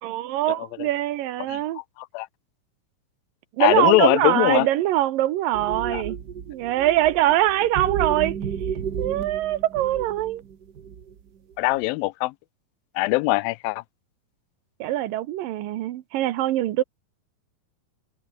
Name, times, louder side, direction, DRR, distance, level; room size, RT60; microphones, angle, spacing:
voice 1, 0.0-1.8 3.6-6.2 6.5-8.4 9.0-10.4 14.8-16.8, right 14 dB, 75° right, 2.7 m, -23 dB
voice 2, 1.5-2.3 3.6-4.7 5.9-6.0 11.6-12.3 13.0-13.8, left 21 dB, 85° left, 2.4 m, -22 dB
sound 1, 5.5-11.2 11.5-11.8, right 7 dB, 60° right, 1.0 m, -32 dB
omnidirectional pair, 4.1 m